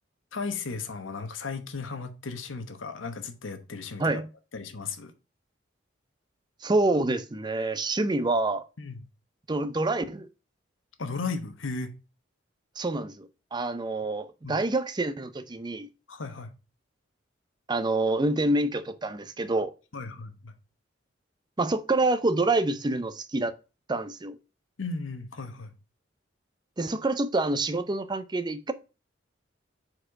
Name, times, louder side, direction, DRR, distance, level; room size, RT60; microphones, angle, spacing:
voice 1, 0.3-4.2 4.5-5.1 8.8-9.0 11.0-11.9 14.4-14.6 16.1-16.5 19.9-20.5 24.8-25.7, left 4 dB, 85° left, 1.0 m, -35 dB
voice 2, 6.6-8.7 9.5-10.3 12.8-15.9 17.7-19.7 21.6-23.5 23.9-24.4 26.8-28.7, right 2 dB, 20° right, 0.5 m, -27 dB
4.9 x 4.4 x 6.1 m
head